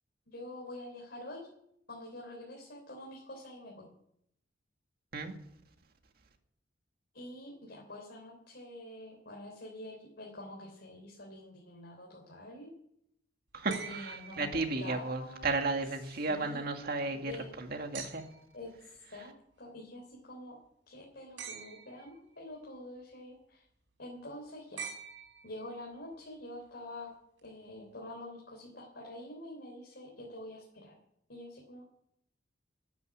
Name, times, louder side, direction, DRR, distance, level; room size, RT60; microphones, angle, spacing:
voice 1, 0.3-1.5 1.9-3.9 7.1-12.7 13.7-15.6 16.0-17.5 18.5-18.7 19.1-19.3 19.6-20.6 20.9-23.6 24.0-24.9 25.4-27.1 27.4-30.9 31.3-31.9, left 1 dB, 60° left, -2 dB, 3.8 m, -46 dB
voice 2, 13.5-17.3 17.6-18.2, right 3 dB, 55° right, 4 dB, 2.0 m, -34 dB
sound 1, 13.7-15.1 17.9-18.6 21.4-22.2 24.8-25.8 27.4-27.5, right 6 dB, 75° right, 4.7 m, -45 dB
13.0 x 9.5 x 9.8 m, 0.74 s
head